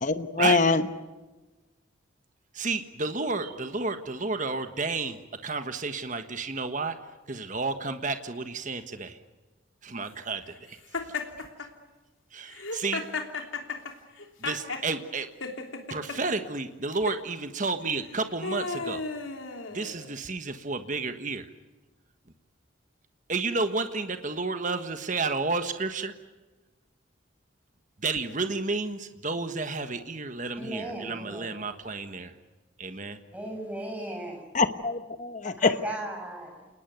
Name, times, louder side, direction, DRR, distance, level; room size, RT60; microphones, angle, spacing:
voice 1, 0.0-0.9 34.5-35.7, left 3 dB, 40° left, 10 dB, 1.1 m, -24 dB
voice 2, 2.5-7.0 7.3-9.2 9.8-10.8 12.3-13.0 14.4-15.3 15.9-19.0 19.7-21.5 23.3-26.1 28.0-32.3 32.8-33.2, right 3 dB, 40° right, 8 dB, 1.4 m, -31 dB
Laughter, 10.9-11.7 12.5-14.9 15.4-16.2 16.9-17.2 17.9-20.2, left 4 dB, 85° left, 3.3 m, -34 dB
voice 3, 30.6-31.5 33.3-34.4 35.4-36.7, right 1 dB, 5° right, 2 dB, 6.2 m, -37 dB
29.0 x 20.0 x 9.4 m, 1.2 s
head